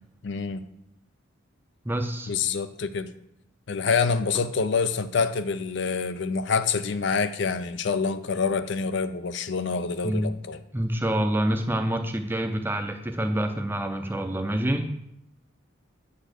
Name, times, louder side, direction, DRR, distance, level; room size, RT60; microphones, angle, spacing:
voice 1, 0.2-0.6 2.3-3.1 3.7-10.6, left 5 dB, 55° left, 11 dB, 0.5 m, -26 dB
voice 2, 1.8-2.3 10.0-10.3 10.7-14.8, right 1 dB, 10° right, 5 dB, 0.5 m, -27 dB
8.9 x 4.1 x 6.6 m, 0.78 s
head